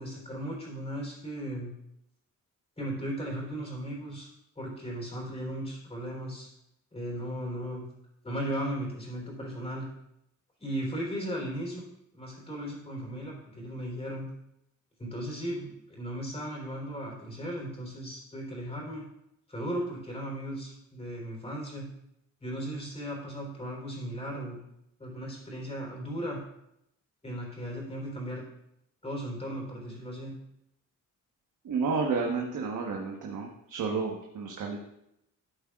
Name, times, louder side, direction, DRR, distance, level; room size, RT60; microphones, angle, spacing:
voice 1, 0.0-1.7 2.8-4.3 4.6-6.5 6.9-7.8 8.2-9.9 10.6-11.9 12.1-14.3 15.0-19.1 19.5-21.9 22.4-24.6 25.0-26.4 27.2-28.4 29.0-30.3, equal, 20° left, -1 dB, 3.6 m, -36 dB
voice 2, 31.6-34.8, right 4 dB, 75° right, 0 dB, 1.2 m, -31 dB
12.5 x 8.4 x 2.4 m, 0.81 s
cardioid pair, 125°, 31 cm